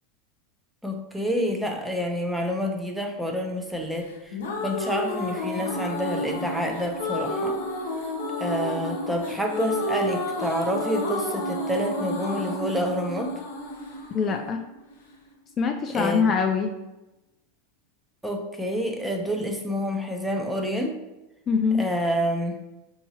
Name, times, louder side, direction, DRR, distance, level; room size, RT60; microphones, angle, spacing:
voice 1, 0.8-7.6 8.4-13.3 15.9-16.3 18.2-21.0 21.7-22.5, equal, 5° right, 2 dB, 0.6 m, -28 dB
sound 1, 4.1-15.1, left 1 dB, 80° left, 0.8 m, -30 dB
voice 2, 14.1-14.6 15.6-16.7 21.5-21.8, left 5 dB, 35° left, 4 dB, 0.3 m, -23 dB
4.4 x 2.8 x 2.8 m, 0.98 s
hypercardioid pair, 105°, 0 cm